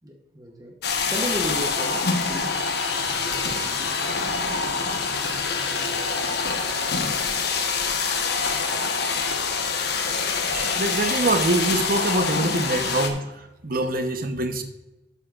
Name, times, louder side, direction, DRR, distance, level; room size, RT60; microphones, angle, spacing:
voice 1, 0.0-0.7 1.1-2.5, equal, 20° right, 2 dB, 1.0 m, -33 dB
sound 1, 0.8-13.1, left 4 dB, 65° left, 1.2 m, -25 dB
voice 2, 10.5-14.6, right 2 dB, 55° right, 7 dB, 1.1 m, -25 dB
12.0 x 8.3 x 2.5 m, 0.99 s
head